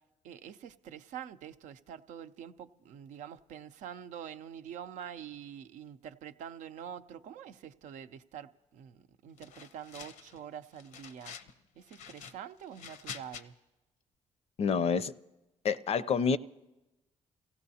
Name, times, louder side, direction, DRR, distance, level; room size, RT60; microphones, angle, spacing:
voice 1, 0.2-11.4 11.8-13.5, right 9 dB, 85° right, 0.5 m, -46 dB
sound 1, 9.4-10.4 10.7-11.5 11.9-13.4, left 7 dB, 90° left, 0.7 m, -47 dB
voice 2, 14.6-15.1 15.6-16.4, left 6 dB, 55° left, 0.5 m, -28 dB
28.0 x 16.5 x 2.8 m
cardioid pair, 75°, 13 cm